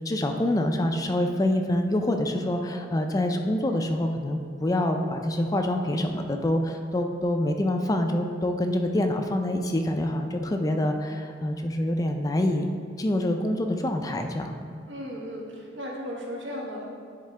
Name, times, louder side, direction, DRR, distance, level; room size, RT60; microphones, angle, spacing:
voice 1, 0.1-12.7 13.0-14.7, left 1 dB, 20° left, 5 dB, 0.3 m, -26 dB
voice 2, 14.9-16.8, equal, 80° right, -3 dB, 1.4 m, -35 dB
10.5 x 3.7 x 3.2 m, 2.2 s
head